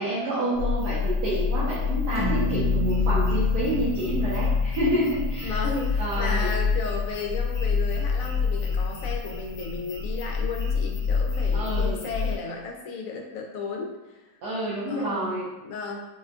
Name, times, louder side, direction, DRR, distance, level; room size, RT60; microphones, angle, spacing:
voice 1, 0.0-5.6 6.0-6.5 11.5-12.0 14.4-15.5, right 1 dB, 85° right, -10 dB, 1.4 m, -28 dB
sound 1, 0.5-12.4, left 5 dB, 45° left, 0.9 m, -27 dB
sound 2, 2.2-6.6, right 1 dB, 30° right, 0.6 m, -33 dB
voice 2, 5.4-14.2 14.9-15.4 15.6-16.1, left 4 dB, 70° left, 1 dB, 0.9 m, -34 dB
4.2 x 2.2 x 2.4 m, 1.1 s
omnidirectional pair, 1.7 m